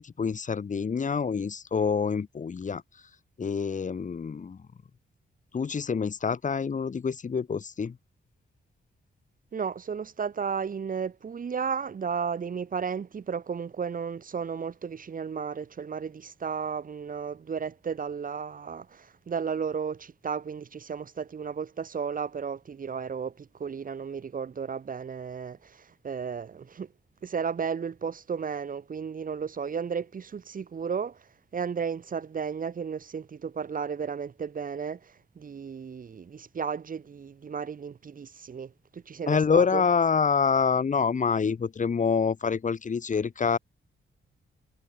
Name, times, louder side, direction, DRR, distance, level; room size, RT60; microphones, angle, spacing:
voice 1, 0.0-2.8 3.4-4.6 5.5-8.0 39.3-43.6, left 5 dB, 35° left, 1.8 m, -26 dB
voice 2, 9.5-26.9 27.2-31.2 31.5-39.8, right 6 dB, 40° right, 1.4 m, -34 dB
wide cardioid pair, 180°, 21 cm